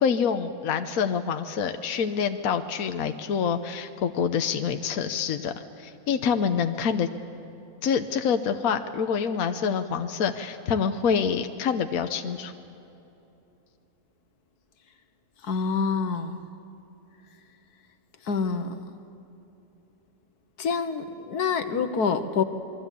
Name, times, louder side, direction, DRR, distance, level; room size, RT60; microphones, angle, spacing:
voice 1, 0.0-7.1 7.8-12.5, left 6 dB, 70° left, 7 dB, 1.3 m, -26 dB
voice 2, 15.4-16.4 18.2-18.8 20.6-22.4, left 5 dB, 85° left, 9 dB, 1.8 m, -26 dB
27.5 x 22.5 x 8.4 m, 2.9 s
omnidirectional pair, 1.6 m